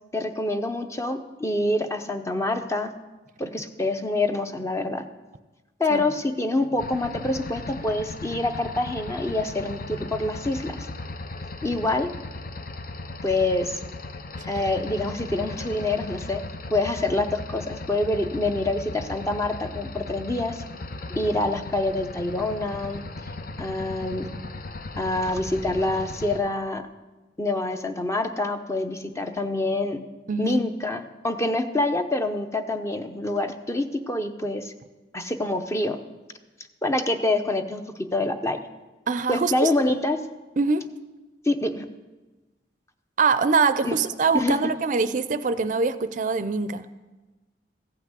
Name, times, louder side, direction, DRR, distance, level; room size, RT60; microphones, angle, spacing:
voice 1, 0.1-2.9 3.4-5.1 5.8-10.8 11.6-12.1 13.2-13.8 14.5-16.4 16.7-20.6 21.1-23.3 23.6-24.3 25.0-26.8 27.4-30.0 30.4-34.7 35.1-36.0 36.8-38.6 39.3-40.2 41.4-41.9 43.8-44.0 44.3-44.6, left 2 dB, 15° left, 7 dB, 0.7 m, -26 dB
sound 1, 6.8-26.4, left 2 dB, 55° left, 0.7 m, -37 dB
voice 2, 30.3-30.6 39.1-39.7 40.6-40.8 43.2-46.9, right 4 dB, 45° right, 12 dB, 0.5 m, -23 dB
15.0 x 5.8 x 8.1 m, 1.2 s
head